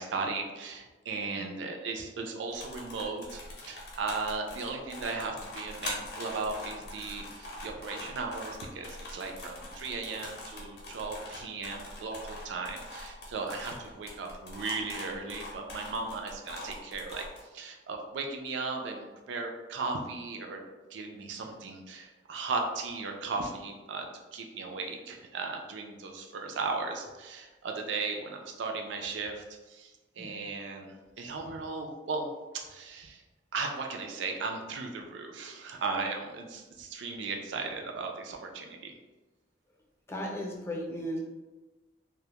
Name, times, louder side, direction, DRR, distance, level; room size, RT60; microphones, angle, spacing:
voice 1, 0.0-17.3 17.5-20.6 20.9-32.3 32.5-33.2 33.5-38.9, right 4 dB, 80° right, 3 dB, 0.4 m, -36 dB
sound 1, 2.5-17.4, left 1 dB, 60° left, 0.6 m, -43 dB
voice 2, 40.1-41.2, equal, 15° left, -2 dB, 0.4 m, -36 dB
2.2 x 2.0 x 2.8 m, 1.2 s
head